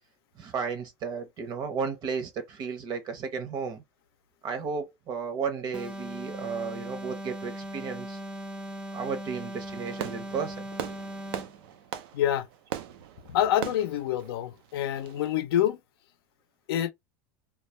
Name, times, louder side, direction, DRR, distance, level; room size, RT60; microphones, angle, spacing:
voice 1, 0.4-3.8 4.4-8.2 8.9-10.7, right 5 dB, 35° right, 0.8 m, -33 dB
sound 1, 5.7-11.6, right 1 dB, 10° right, 0.4 m, -39 dB
Fireworks, 9.7-15.3, right 11 dB, 75° right, 0.4 m, -40 dB
voice 2, 12.1-12.5 13.3-15.8 16.7-16.9, left 11 dB, 85° left, 0.5 m, -26 dB
2.3 x 2.1 x 3.0 m
supercardioid pair, 140°, 12 cm